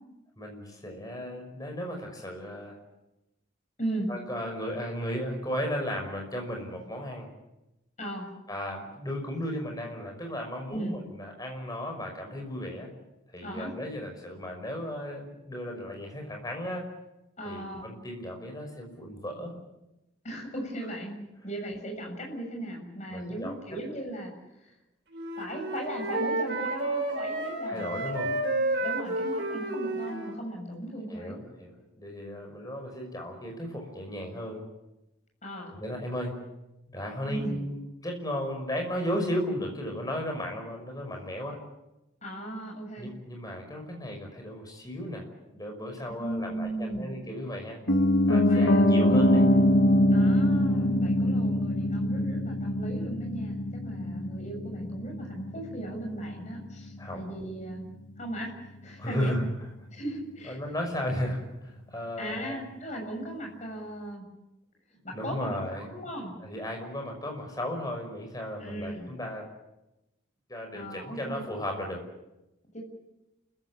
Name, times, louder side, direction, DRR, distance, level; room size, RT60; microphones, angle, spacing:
voice 1, 0.4-2.8 4.1-7.3 8.5-12.9 13.3-16.9 17.4-19.5 23.1-23.6 27.6-28.3 31.1-34.7 35.8-36.4 36.9-41.6 43.0-45.3 45.5-47.8 48.3-49.5 57.0-57.2 59.0-59.5 60.5-62.5 65.1-65.9 66.4-69.5 70.5-72.0, equal, 20° left, 2 dB, 5.8 m, -35 dB
voice 2, 3.8-4.1 8.0-8.3 10.7-10.9 13.4-13.7 17.4-17.9 20.2-21.1 21.4-24.3 24.6-24.7 25.4-31.4 35.4-35.7 37.3-37.6 42.2-43.1 46.1-47.3 48.4-49.1 50.1-57.9 58.2-58.5 58.8-59.4 59.9-60.6 62.2-64.2 65.0-66.4 68.6-69.1 70.7-71.4 72.7-72.8, right 1 dB, 35° left, 1 dB, 7.2 m, -37 dB
Wind instrument woodwind instrument, 25.1-30.4, right 2 dB, 60° right, 4.7 m, -31 dB
Piano, 47.9-57.9 58.2-58.3, left 1 dB, 85° left, 2.5 m, -24 dB
29.5 x 15.5 x 8.6 m, 0.95 s
head